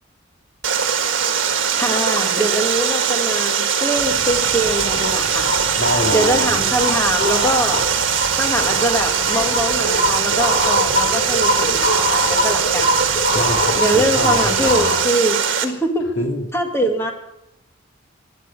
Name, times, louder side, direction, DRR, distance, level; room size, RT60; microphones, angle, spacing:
Water, 0.6-15.6, right 7 dB, 65° right, 1.6 m, -21 dB
voice 1, 1.8-5.5 6.1-7.8 8.4-12.9 13.8-16.0 16.5-17.1, equal, 10° left, 3 dB, 2.0 m, -23 dB
sound 1, 4.0-14.9, equal, 10° right, 1.2 m, -37 dB
sound 2, 4.9-14.9, left 1 dB, 50° left, 3.7 m, -23 dB
voice 2, 5.7-6.7 13.3-15.0 16.2-16.4, left 1 dB, 70° left, 2 dB, 2.6 m, -25 dB
12.5 x 10.5 x 8.3 m, 0.84 s
head